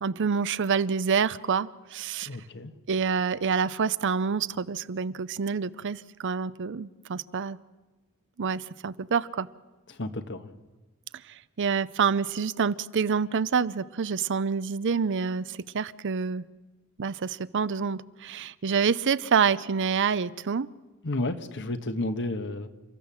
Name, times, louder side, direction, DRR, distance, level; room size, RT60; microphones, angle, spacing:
voice 1, 0.0-2.3 2.9-7.6 8.4-9.5 11.3-16.4 17.0-20.7, right 6 dB, 60° right, 17 dB, 0.6 m, -27 dB
voice 2, 2.3-2.7 9.9-10.5 21.0-22.7, left 2 dB, 55° left, 9 dB, 1.3 m, -32 dB
29.5 x 14.0 x 7.4 m, 1.2 s
head